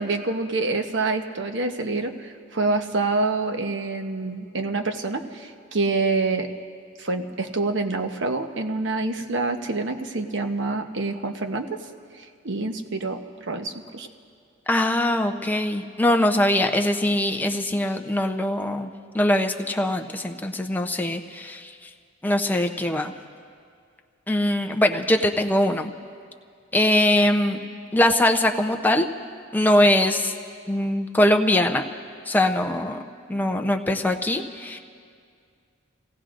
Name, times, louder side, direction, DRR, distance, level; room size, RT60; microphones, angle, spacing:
voice 1, 0.0-6.5 7.0-11.7 12.2-13.2 13.5-14.1, right 3 dB, 65° right, 6 dB, 1.0 m, -26 dB
voice 2, 14.7-18.9 19.1-21.9 22.2-23.1 24.3-25.9 26.7-27.6 27.9-29.1 29.5-30.3 30.7-31.8 32.3-33.0 33.3-34.8, left 1 dB, 10° left, 4 dB, 0.7 m, -22 dB
29.5 x 17.5 x 2.6 m, 2.2 s
head